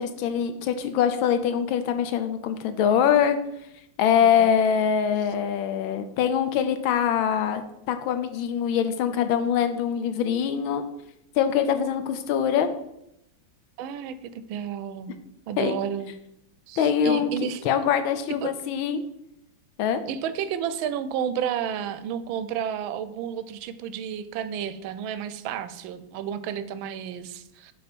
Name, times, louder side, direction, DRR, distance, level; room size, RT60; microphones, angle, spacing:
voice 1, 0.0-3.4 4.0-10.8 11.4-12.7 15.6-15.8 16.8-17.3 17.6-19.0 19.8-20.0, left 8 dB, 90° left, 10 dB, 1.5 m, -23 dB
voice 2, 13.8-15.1 15.5-16.1 16.7-17.6 18.4-18.5 20.1-27.7, right 8 dB, 90° right, 12 dB, 1.4 m, -31 dB
6.6 x 4.4 x 5.2 m, 0.81 s
omnidirectional pair, 2.1 m